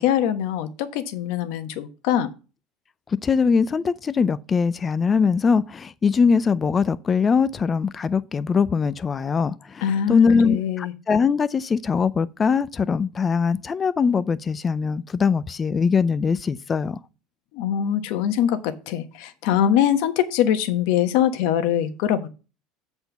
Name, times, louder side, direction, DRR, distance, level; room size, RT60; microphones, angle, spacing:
voice 1, 0.0-2.3 9.8-10.9 17.5-22.3, left 10 dB, 70° left, 1.1 m, -23 dB
voice 2, 3.2-17.0, left 5 dB, 25° left, 0.5 m, -22 dB
7.9 x 4.4 x 6.9 m
cardioid pair, 135°, 0 cm